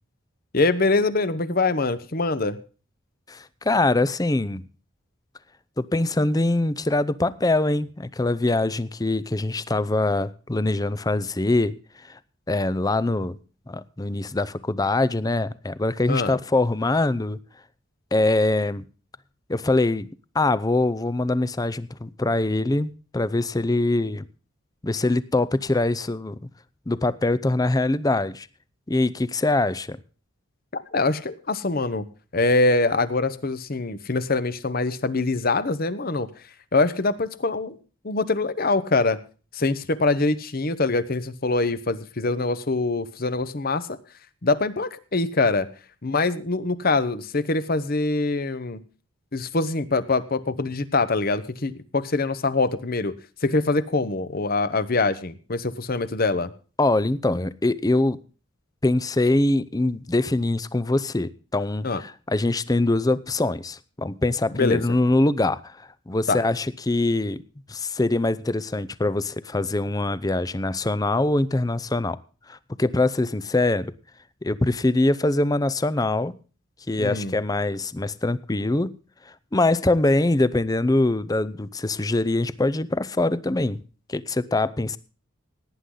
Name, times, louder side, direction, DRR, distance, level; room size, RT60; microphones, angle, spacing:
voice 1, 0.5-2.6 16.1-16.4 30.7-32.0 32.3-36.3 36.7-37.8 38.0-39.2 39.5-44.0 44.4-45.7 46.0-48.8 49.3-53.1 53.4-56.5 61.8-62.0 64.5-64.8 66.3-66.4 77.0-77.3, left 3 dB, 45° left, 13 dB, 0.9 m, -24 dB
voice 2, 3.3-4.6 5.8-11.7 12.1-12.2 12.5-13.4 13.7-17.4 18.1-18.8 19.5-20.1 20.3-24.2 24.8-26.4 26.9-28.5 28.9-30.0 56.8-58.2 58.8-67.4 67.7-72.2 72.5-73.9 74.4-76.3 76.9-78.9 79.5-83.8 84.1-85.0, left 2 dB, 20° left, 17 dB, 0.5 m, -23 dB
17.5 x 9.9 x 3.9 m, 0.37 s
head